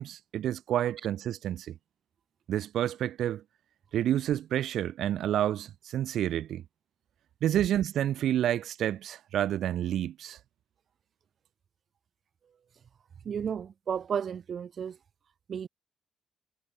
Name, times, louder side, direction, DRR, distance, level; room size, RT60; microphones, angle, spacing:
voice 1, 0.0-1.7 2.5-3.4 3.9-6.6 7.4-10.4, right 11 dB, 75° right, 0.4 m, -29 dB
voice 2, 13.2-15.0 15.5-15.7, right 7 dB, 55° right, 1.0 m, -33 dB
cardioid pair, 90°, 0 cm